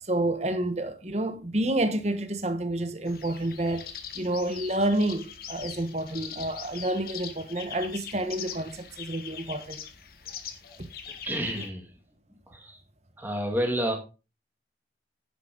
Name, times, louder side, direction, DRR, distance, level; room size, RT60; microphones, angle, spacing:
voice 1, 0.0-3.8 4.1-9.8 11.5-11.6, right 1 dB, 40° right, 1.3 m, -29 dB
sound 1, 3.1-11.7, left 8 dB, 55° left, 1.3 m, -42 dB
voice 2, 11.1-12.0 12.5-12.8 13.2-13.9, equal, 10° right, 2.4 m, -30 dB
10.0 x 7.7 x 3.9 m
head